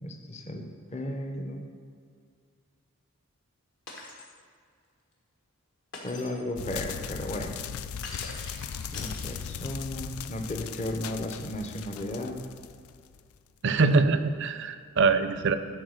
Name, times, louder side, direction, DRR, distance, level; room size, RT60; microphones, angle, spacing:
voice 1, 0.0-0.6 0.9-1.6 6.0-7.6 8.9-12.4, left 1 dB, 30° left, 3 dB, 0.8 m, -34 dB
Shatter, 3.9-4.3 5.9-6.4 8.0-9.7, left 3 dB, 60° left, 1.6 m, -43 dB
sound 1, 6.6-13.4, left 7 dB, 85° left, 0.4 m, -38 dB
voice 2, 13.6-15.6, right 4 dB, 55° right, 11 dB, 0.5 m, -23 dB
11.5 x 4.1 x 6.5 m, 2.1 s
head